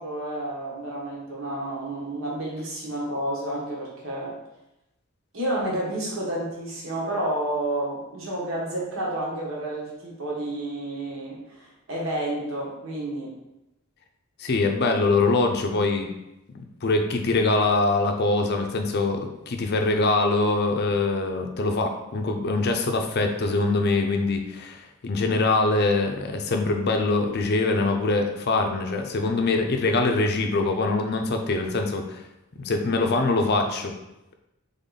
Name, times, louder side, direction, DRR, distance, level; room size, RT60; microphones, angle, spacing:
voice 1, 0.0-4.3 5.3-13.3, right 1 dB, 65° right, -4 dB, 1.3 m, -30 dB
voice 2, 14.4-16.1 16.5-32.2 32.6-33.9, left 3 dB, 50° left, 4 dB, 0.5 m, -23 dB
3.7 x 3.6 x 4.0 m, 0.92 s
head